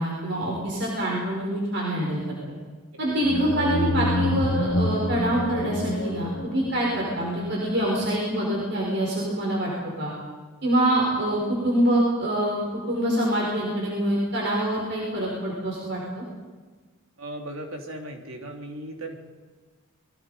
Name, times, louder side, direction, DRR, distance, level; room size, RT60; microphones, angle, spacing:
voice 1, 0.0-2.2 3.0-9.7 10.0-10.1 10.6-12.6 12.9-16.2, right 1 dB, 50° right, -4 dB, 5.7 m, -25 dB
sound 1, 3.2-7.8, left 1 dB, 45° left, 1.3 m, -28 dB
voice 2, 17.2-19.1, right 1 dB, 75° right, 2 dB, 3.6 m, -37 dB
28.5 x 23.0 x 5.3 m, 1.4 s
head